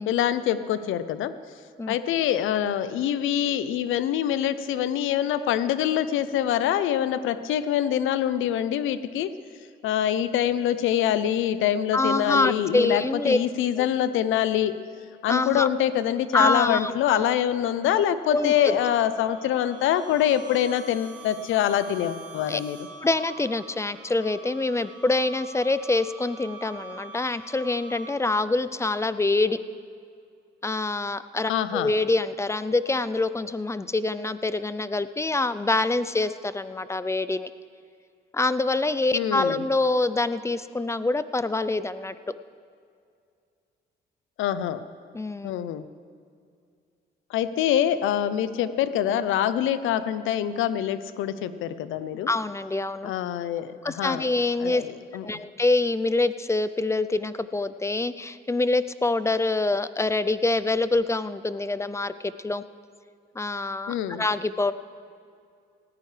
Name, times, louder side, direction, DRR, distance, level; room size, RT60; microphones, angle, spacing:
voice 1, 0.0-1.3 1.9-9.3 9.8-14.8 15.2-22.9 31.5-31.9 39.1-39.6 44.4-44.8 45.4-45.8 47.3-52.3 53.0-54.3 54.6-55.3 63.9-64.2, left 10 dB, 85° left, 13 dB, 0.6 m, -25 dB
voice 2, 11.9-13.4 13.8-13.9 15.3-15.7 16.3-17.3 18.3-18.8 22.5-22.6 23.0-29.6 30.6-37.5 38.3-42.2 45.1-45.5 52.3-53.1 53.8-54.8 55.2-62.6 63.4-64.7, left 2 dB, 15° left, 14 dB, 0.5 m, -25 dB
sound 1, 18.0-28.4, right 3 dB, 75° right, 2.6 m, -45 dB
19.0 x 14.5 x 3.3 m, 2.3 s
cardioid pair, 90°, 20 cm